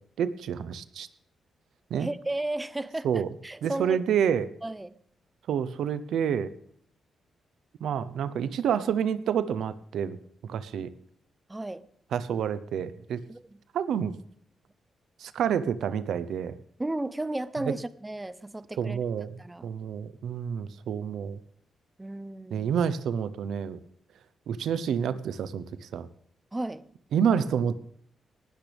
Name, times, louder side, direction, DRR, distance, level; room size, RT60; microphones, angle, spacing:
voice 1, 0.2-1.1 1.9-2.1 3.0-3.3 3.6-4.5 5.5-6.5 7.8-10.2 10.4-10.9 12.1-13.2 13.7-14.1 15.2-16.6 17.7-17.8 18.8-19.3 19.6-21.4 22.5-23.8 24.5-26.1 27.1-27.7, right 8 dB, 85° right, 14 dB, 0.9 m, -28 dB
voice 2, 2.0-4.0 4.6-4.9 11.5-11.9 13.3-13.6 16.8-19.0 19.4-19.7 22.0-22.7 26.5-26.8, right 2 dB, 15° right, 15 dB, 0.7 m, -34 dB
18.5 x 12.5 x 3.5 m, 0.64 s
cardioid pair, 105°, 0 cm